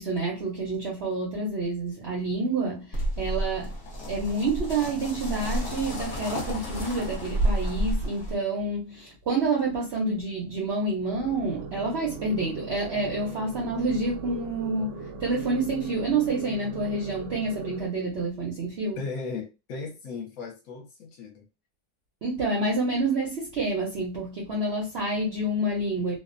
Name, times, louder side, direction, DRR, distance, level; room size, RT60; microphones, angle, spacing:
voice 1, 0.0-3.7 4.1-19.0 22.2-26.2, right 2 dB, 65° right, 0.6 m, -28 dB
sound 1, 2.9-8.3, right 1 dB, 50° left, 1.1 m, -30 dB
sound 2, 11.1-17.9, right 4 dB, 85° right, 1.2 m, -39 dB
voice 2, 19.0-21.5, left 4 dB, 65° left, 1.1 m, -36 dB
2.7 x 2.1 x 2.4 m
omnidirectional pair, 1.8 m